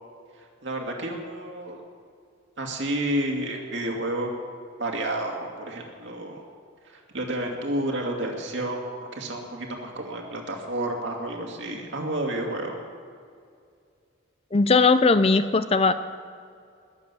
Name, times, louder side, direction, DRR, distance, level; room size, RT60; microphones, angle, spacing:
voice 1, 0.4-1.8 2.6-4.3 4.8-6.4 6.8-12.8, right 1 dB, 60° right, 1 dB, 2.3 m, -30 dB
voice 2, 14.5-15.9, left 4 dB, 30° left, 12 dB, 0.5 m, -19 dB
21.0 x 7.8 x 7.0 m, 2.3 s
head